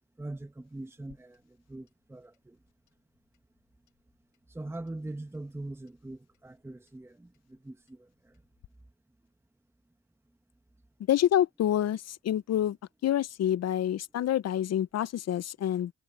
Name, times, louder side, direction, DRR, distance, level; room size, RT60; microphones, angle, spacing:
voice 1, 0.2-2.6 4.5-8.4, right 2 dB, 10° right, 1.2 m, -42 dB
Clock, 0.9-8.7, left 14 dB, 85° left, 7.2 m, -67 dB
voice 2, 11.1-12.8 13.0-15.9, left 11 dB, 55° left, 0.7 m, -27 dB
cardioid pair, 90°, 30 cm